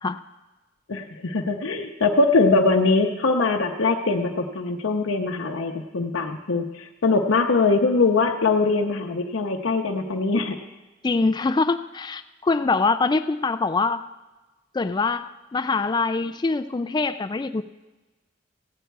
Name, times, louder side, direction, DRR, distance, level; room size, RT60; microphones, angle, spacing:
voice 1, 0.9-10.6, left 3 dB, 70° left, 2 dB, 0.7 m, -22 dB
voice 2, 11.0-14.0 14.7-17.6, left 3 dB, 20° left, 11 dB, 0.3 m, -24 dB
16.0 x 9.2 x 4.6 m, 1.1 s
head